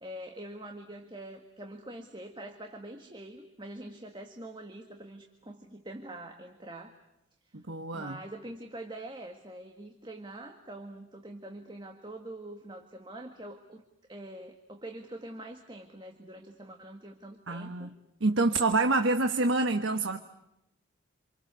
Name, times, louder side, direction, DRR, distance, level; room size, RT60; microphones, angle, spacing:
voice 1, 0.0-7.0 7.9-13.8 14.1-17.9, right 1 dB, 20° right, 1.7 m, -44 dB
voice 2, 7.5-8.2 17.5-17.9 18.2-20.2, right 2 dB, 65° right, 1.3 m, -27 dB
28.0 x 28.0 x 6.9 m
head